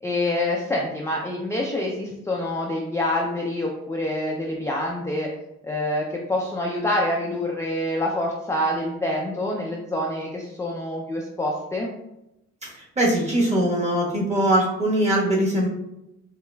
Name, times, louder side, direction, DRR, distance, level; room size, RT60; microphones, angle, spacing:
voice 1, 0.0-5.3 5.6-11.9, left 1 dB, 10° left, -1 dB, 0.4 m, -26 dB
voice 2, 12.6-15.7, right 1 dB, 20° right, -4 dB, 1.3 m, -22 dB
4.9 x 2.3 x 2.3 m, 0.89 s
cardioid pair, 90°, 30 cm